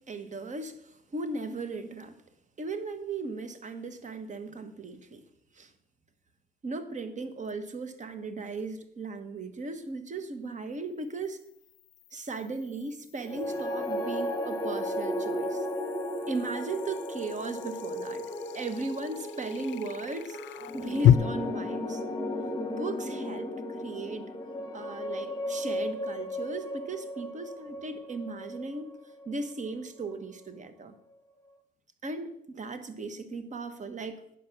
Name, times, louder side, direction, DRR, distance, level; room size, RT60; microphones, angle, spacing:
voice 1, 0.1-2.2 2.6-5.2 5.5-5.7 6.6-11.4 12.1-15.7 16.3-18.2 18.5-22.0 22.7-24.3 24.7-28.9 29.2-30.9 32.0-34.4, right 3 dB, 40° right, 10 dB, 1.1 m, -37 dB
sound 1, 7.5-7.6 11.0-21.1, left 11 dB, 70° left, 0.4 m, -32 dB
sound 2, 13.2-29.5, left 1 dB, 20° left, 1.2 m, -35 dB
9.5 x 6.5 x 5.9 m, 0.76 s
cardioid pair, 90°, 20 cm